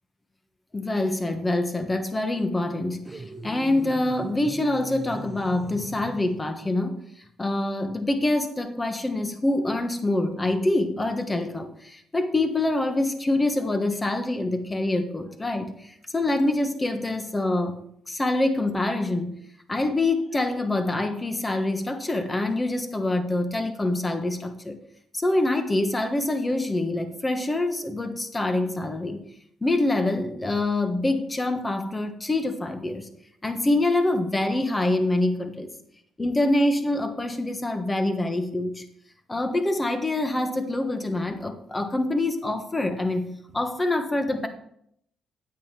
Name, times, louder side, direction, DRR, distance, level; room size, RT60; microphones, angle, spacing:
voice 1, 0.7-7.0 7.4-17.7 18.1-19.4 19.7-24.8 25.1-29.2 29.6-33.1 33.4-35.7 36.2-38.8 39.3-44.5, left 2 dB, 20° left, 7 dB, 1.3 m, -25 dB
sound 1, 3.1-6.6, right 3 dB, 20° right, 0.8 m, -40 dB
9.2 x 8.7 x 4.4 m, 0.72 s
cardioid pair, 90°, 0 cm